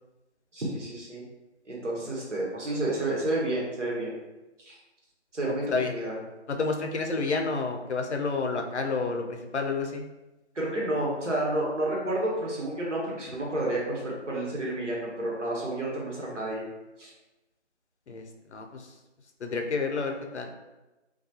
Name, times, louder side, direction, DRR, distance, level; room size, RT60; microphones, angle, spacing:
voice 1, 0.5-1.2 1.7-4.1 4.7-4.8 5.3-6.1 10.5-16.6 17.0-17.1, right 1 dB, 80° right, -4 dB, 1.1 m, -30 dB
voice 2, 5.4-5.9 6.5-10.1 18.1-18.9 19.4-20.5, left 4 dB, 70° left, 3 dB, 0.5 m, -30 dB
2.3 x 2.3 x 2.8 m, 1.1 s
figure-of-eight pair, 155°, 35 cm